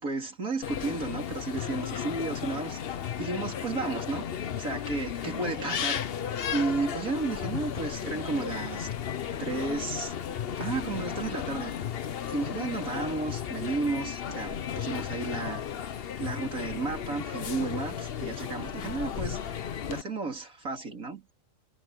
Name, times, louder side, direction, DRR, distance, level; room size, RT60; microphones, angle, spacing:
voice 1, 0.0-4.3 4.6-6.0 6.5-8.9 9.4-10.2 10.6-11.7 12.3-15.6 16.2-19.4 19.9-21.3, right 3 dB, 90° right, 4.0 m, -33 dB
sound 1, 0.6-20.0, left 8 dB, 50° left, 0.9 m, -34 dB
omnidirectional pair, 1.4 m